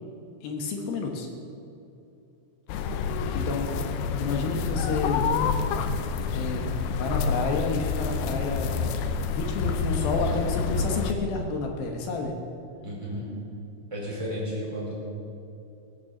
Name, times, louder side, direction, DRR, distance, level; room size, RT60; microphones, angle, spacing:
voice 1, 0.4-1.3 3.3-5.3 6.3-8.8 9.3-12.3, left 3 dB, 70° left, 2 dB, 2.4 m, -30 dB
sound 1, 2.7-11.1, left 5 dB, 85° left, 2.3 m, -28 dB
voice 2, 12.8-13.3 13.9-14.9, equal, 5° right, -5 dB, 3.8 m, -33 dB
17.5 x 9.5 x 7.3 m, 2.7 s
omnidirectional pair, 5.9 m